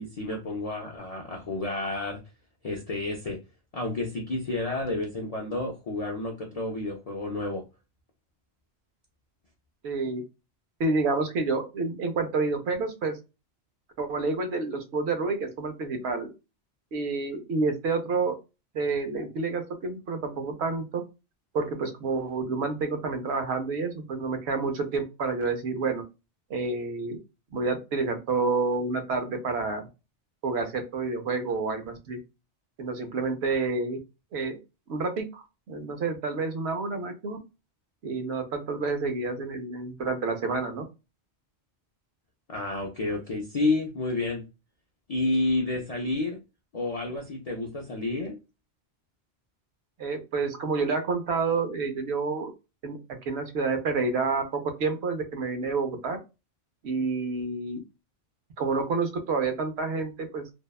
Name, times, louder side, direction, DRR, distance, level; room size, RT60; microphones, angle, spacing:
voice 1, 0.0-2.2 2.6-3.4 3.7-7.6 42.5-44.4 45.1-46.4 46.7-48.4, left 2 dB, 50° left, 0 dB, 0.4 m, -30 dB
voice 2, 9.8-10.2 10.8-13.2 14.0-16.3 16.9-18.3 18.7-21.0 21.5-26.0 26.5-27.2 27.5-29.9 30.4-32.2 32.8-34.0 34.3-34.6 34.9-37.4 38.0-40.8 50.0-52.5 52.8-56.2 56.8-57.8 58.6-60.5, right 4 dB, 75° right, 6 dB, 0.9 m, -29 dB
2.6 x 2.1 x 2.3 m, 0.27 s
omnidirectional pair, 1.1 m